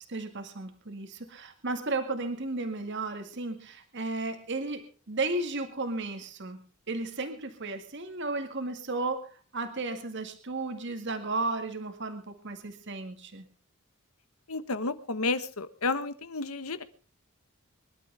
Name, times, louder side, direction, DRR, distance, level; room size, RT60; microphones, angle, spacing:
voice 1, 0.1-6.6 6.9-13.4, right 3 dB, 55° right, 7 dB, 2.1 m, -34 dB
voice 2, 14.5-16.8, left 3 dB, 85° left, 12 dB, 1.4 m, -31 dB
24.5 x 12.0 x 3.5 m, 0.36 s
head